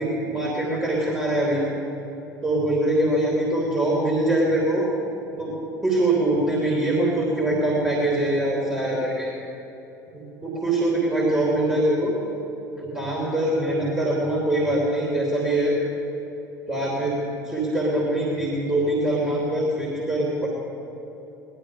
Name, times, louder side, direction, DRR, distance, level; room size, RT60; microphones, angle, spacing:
voice 1, 0.0-1.6 2.4-4.8 5.4-5.5 5.8-9.3 10.1-12.1 12.8-15.8 16.7-17.2 17.4-20.5, right 1 dB, 10° right, -5 dB, 3.3 m, -23 dB
18.5 x 12.0 x 5.1 m, 3.0 s
figure-of-eight pair, 65°, 10 cm